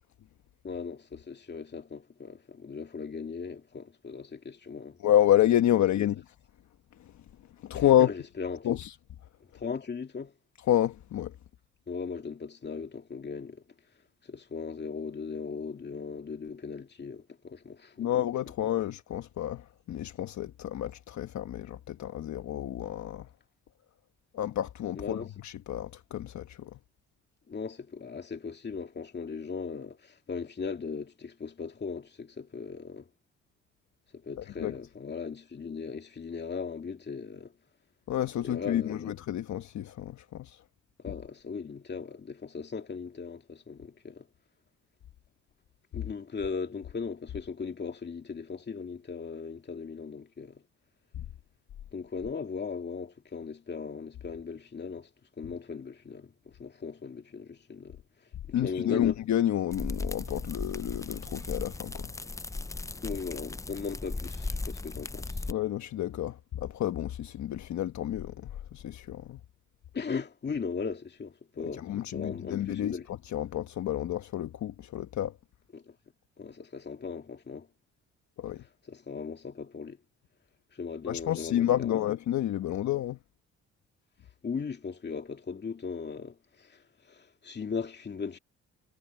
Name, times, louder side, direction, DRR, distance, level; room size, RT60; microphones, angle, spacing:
voice 1, 0.6-5.0 6.0-6.1 7.7-8.8 9.5-10.3 11.9-13.6 14.3-18.1 24.9-25.3 27.5-33.1 34.1-37.5 38.4-39.1 41.0-44.3 45.9-50.6 51.9-55.1 55.4-58.0 58.5-59.1 63.0-65.4 69.9-73.1 75.7-75.9 76.4-77.7 78.9-80.0 80.7-82.0 84.4-88.4, left 5 dB, 35° left, 2.4 m, -38 dB
voice 2, 5.0-6.2 7.0-7.1 7.6-8.1 8.6-8.9 10.7-11.3 18.0-23.3 24.3-26.7 34.4-34.8 38.1-40.6 41.1-41.2 51.1-51.2 58.5-62.1 65.5-69.4 71.8-75.4 78.4-78.6 81.1-83.2, left 11 dB, 65° left, 1.2 m, -29 dB
sound 1, 59.7-65.5, left 3 dB, 10° left, 0.5 m, -37 dB
cardioid pair, 90°, 30 cm